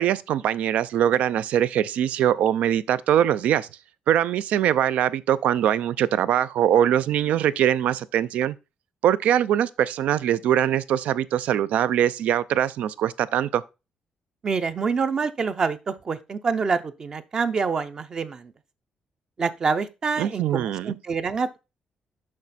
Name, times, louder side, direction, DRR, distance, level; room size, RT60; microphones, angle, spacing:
voice 1, 0.0-3.7 4.1-8.6 9.0-13.6 20.2-21.0, right 10 dB, 85° right, 0.5 m, -22 dB
voice 2, 14.4-18.5 19.4-21.6, right 5 dB, 30° right, 0.5 m, -26 dB
6.5 x 6.1 x 4.1 m
cardioid pair, 175°, 2 cm